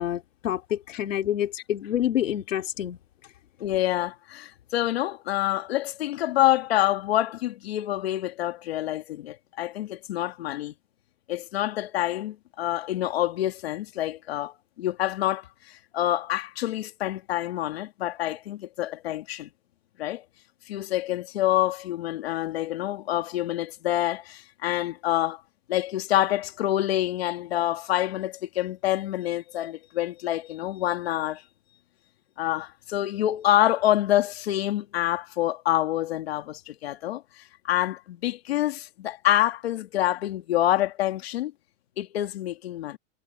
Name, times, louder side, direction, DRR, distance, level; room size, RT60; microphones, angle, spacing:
voice 1, 0.0-3.0, left 11 dB, 85° left, 3.1 m, -27 dB
voice 2, 3.6-10.7 11.3-19.5 20.0-20.2 20.7-25.4 25.7-31.4 32.4-41.5 42.0-43.0, left 13 dB, 55° left, 2.6 m, -27 dB
supercardioid pair, 180°, 37 cm